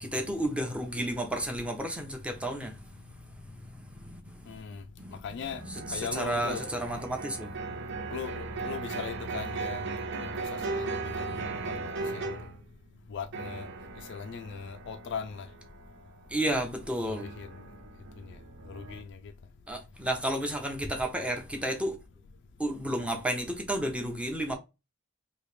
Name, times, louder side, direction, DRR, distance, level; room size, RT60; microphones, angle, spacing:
voice 1, 0.0-7.5 16.3-17.3 19.7-22.0 22.6-24.5, right 1 dB, 5° right, 0.7 m, -32 dB
voice 2, 4.5-4.8 5.2-5.6 5.9-6.8 8.1-10.3 10.7-12.4 13.1-13.7 14.1-15.5 17.0-17.6 18.2-18.4 18.7-19.2, left 6 dB, 55° left, 0.4 m, -39 dB
sound 1, 5.5-12.7 13.3-19.0, right 3 dB, 60° right, 0.7 m, -38 dB
3.1 x 2.8 x 3.1 m
head